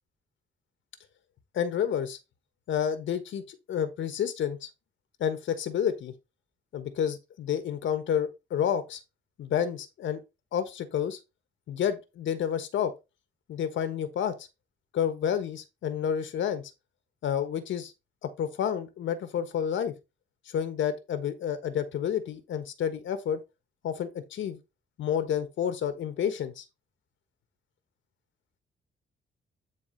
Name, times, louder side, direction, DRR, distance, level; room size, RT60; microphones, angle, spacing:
voice 1, 1.5-2.2 2.7-4.7 5.2-6.1 6.7-9.0 9.4-10.2 10.5-11.2 11.7-12.9 13.5-14.5 14.9-16.7 17.2-17.9 18.2-19.9 20.5-23.4 23.8-24.6 25.0-26.6, left 8 dB, 85° left, 1.4 m, -30 dB
9.5 x 4.2 x 4.1 m
wide cardioid pair, 160°, 19 cm